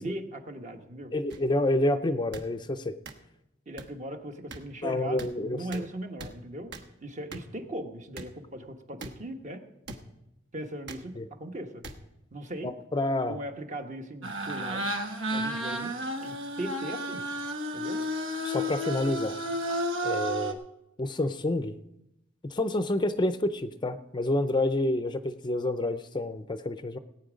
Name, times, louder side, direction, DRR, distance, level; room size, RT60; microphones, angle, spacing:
voice 1, 0.0-1.1 3.7-6.7 7.0-9.6 10.5-11.8 12.3-12.7 13.3-14.9 15.3-15.9 16.2-17.3 17.7-18.0, right 1 dB, 40° right, 6 dB, 1.1 m, -38 dB
voice 2, 1.1-2.9 4.8-5.6 11.2-11.3 12.6-13.4 18.4-19.4 20.0-20.6 21.0-21.8 22.4-27.0, left 1 dB, 25° left, 11 dB, 0.5 m, -28 dB
sound 1, 1.3-1.4 2.3-2.5 3.1-3.2 3.8-3.9 4.5-4.6 5.2-5.3 5.7-5.8 6.2-6.3 6.7-6.9 7.3-7.4 8.2-8.3 9.0-9.1 9.9-10.0 10.9-11.0 11.8-11.9 12.8-13.0, right 3 dB, 60° right, 1.2 m, -41 dB
sound 2, 14.2-20.5, equal, 85° right, 1.4 m, -32 dB
18.5 x 9.0 x 5.0 m, 0.88 s
head